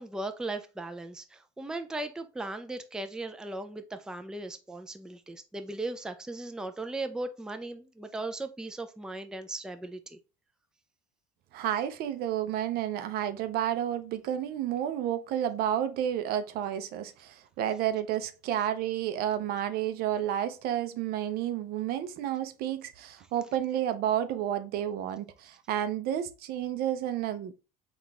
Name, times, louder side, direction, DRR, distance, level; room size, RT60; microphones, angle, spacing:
voice 1, 0.0-10.2, right 2 dB, 5° right, 0.4 m, -37 dB
voice 2, 11.5-27.5, right 11 dB, 60° right, 0.5 m, -31 dB
3.9 x 2.4 x 3.3 m
supercardioid pair, 85°, 18 cm